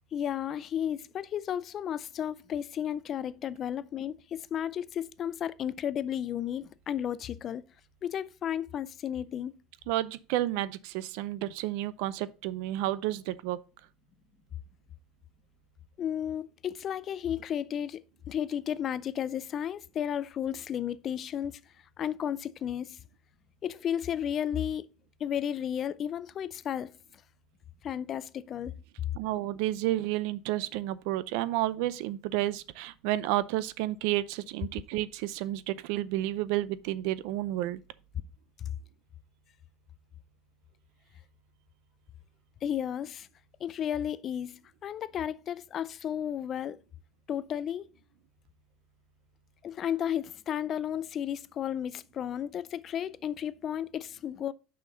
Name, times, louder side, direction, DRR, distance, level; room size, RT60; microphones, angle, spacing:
voice 1, 0.1-7.6 8.0-9.5 16.0-21.6 22.0-23.0 23.6-24.9 25.2-27.0 27.8-28.8 38.6-38.7 42.6-43.3 43.6-46.8 47.3-47.9 49.6-54.5, left 9 dB, 35° left, 0.4 m, -33 dB
voice 2, 9.9-13.6 29.2-37.8, right 15 dB, 75° right, 0.5 m, -31 dB
6.3 x 5.8 x 3.8 m
cardioid pair, 140°, 0 cm